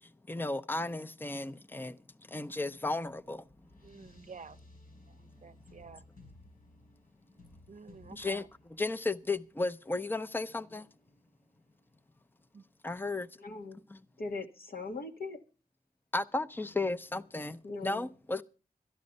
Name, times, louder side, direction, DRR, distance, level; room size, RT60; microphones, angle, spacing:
voice 1, 0.3-2.0 2.3-3.4 8.1-8.5 8.8-10.9 12.8-13.3 13.9-14.0 16.1-18.4, left 2 dB, 15° left, 0.6 m, -34 dB
sound 1, 3.4-13.3, left 2 dB, 70° left, 7.6 m, -60 dB
voice 2, 3.8-4.6 5.1-6.0 7.7-8.5 12.5-12.6, right 5 dB, 55° right, 0.7 m, -51 dB
voice 3, 13.4-13.8 14.2-15.4 17.6-18.1, left 3 dB, 90° left, 1.8 m, -40 dB
13.0 x 11.5 x 5.3 m
wide cardioid pair, 105°, 15 cm